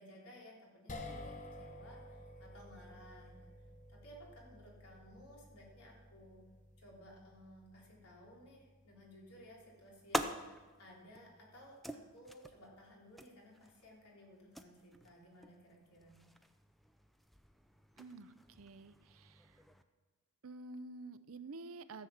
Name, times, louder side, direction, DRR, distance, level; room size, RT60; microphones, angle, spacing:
voice 1, 0.0-3.5 3.9-6.4 6.8-16.2, equal, 75° left, -3 dB, 3.6 m, -58 dB
sound 1, 0.9-13.2, left 1 dB, 35° left, 1.0 m, -54 dB
sound 2, 9.4-19.8, equal, ahead, 0.4 m, -47 dB
voice 2, 18.0-19.6 20.4-22.1, right 3 dB, 65° right, 13 dB, 0.6 m, -50 dB
13.5 x 7.9 x 5.8 m, 1.3 s
head